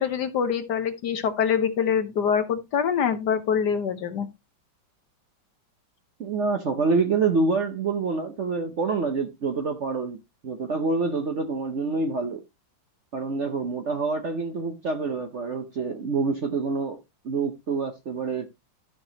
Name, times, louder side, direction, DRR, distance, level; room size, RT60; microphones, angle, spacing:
voice 1, 0.0-4.3, left 7 dB, 65° left, 1.5 m, -25 dB
voice 2, 6.2-10.2 10.4-12.4 13.1-17.0 17.2-18.5, right 4 dB, 55° right, 0.8 m, -26 dB
12.5 x 6.0 x 2.9 m
omnidirectional pair, 2.1 m